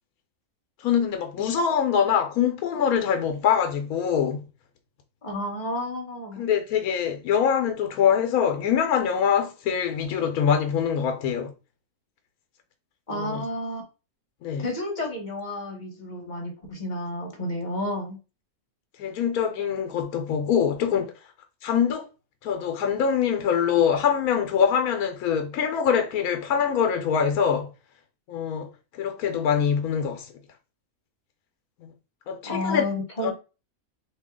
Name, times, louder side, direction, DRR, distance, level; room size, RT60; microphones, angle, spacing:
voice 1, 0.8-4.4 6.4-11.5 13.1-13.4 14.4-14.7 19.0-21.1 21.6-22.0 22.4-27.7 28.3-28.7 29.0-30.3 31.8-31.9 32.3-32.9 33.2-33.3, left 7 dB, 80° left, 1.1 m, -24 dB
voice 2, 5.2-6.4 13.1-13.8 14.6-18.2 32.4-33.3, left 1 dB, 35° left, 1.2 m, -31 dB
2.8 x 2.8 x 3.6 m
omnidirectional pair, 1.5 m